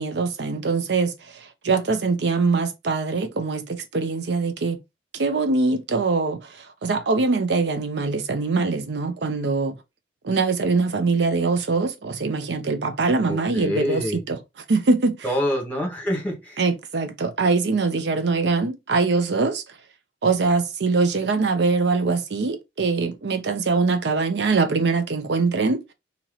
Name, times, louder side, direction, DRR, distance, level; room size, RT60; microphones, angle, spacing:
voice 1, 0.0-4.8 5.1-9.8 10.2-14.4 14.7-15.2 16.6-19.8 20.2-25.8, right 4 dB, 70° right, 0.6 m, -23 dB
voice 2, 13.2-14.2 15.2-16.6, equal, 10° left, 1.4 m, -26 dB
2.9 x 2.9 x 3.9 m
head